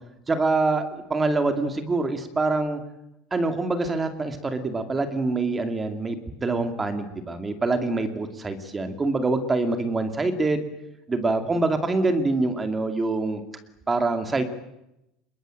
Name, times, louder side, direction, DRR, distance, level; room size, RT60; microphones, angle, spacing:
voice 1, 0.3-2.8 3.3-10.6 11.1-13.4 13.9-14.4, right 3 dB, 10° right, 8 dB, 2.4 m, -25 dB
26.5 x 22.0 x 9.0 m, 0.85 s
cardioid pair, 175°, 0 cm